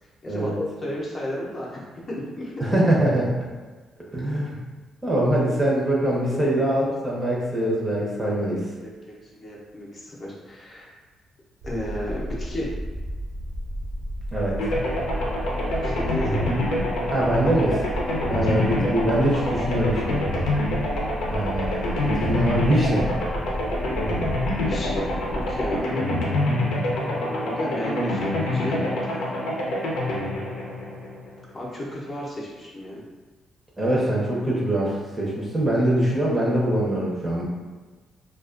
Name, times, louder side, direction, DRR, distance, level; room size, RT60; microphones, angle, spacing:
voice 1, 0.2-2.6 6.3-6.4 8.8-9.1 9.4-10.9 11.6-12.8 15.8-16.7 18.2-18.4 24.6-26.0 27.2-29.4 31.5-33.0, left 1 dB, 35° left, -5 dB, 0.6 m, -33 dB
voice 2, 2.6-3.3 4.1-4.6 5.0-8.7 14.3-14.7 17.1-17.8 18.3-20.3 21.3-23.1 33.8-37.5, right 1 dB, 20° right, -4 dB, 0.7 m, -23 dB
sound 1, 11.6-25.8, equal, 60° right, 0.4 m, -32 dB
sound 2, 14.6-31.5, left 1 dB, 90° left, 0.6 m, -26 dB
2.3 x 2.3 x 2.4 m, 1.3 s
cardioid pair, 90°, 0 cm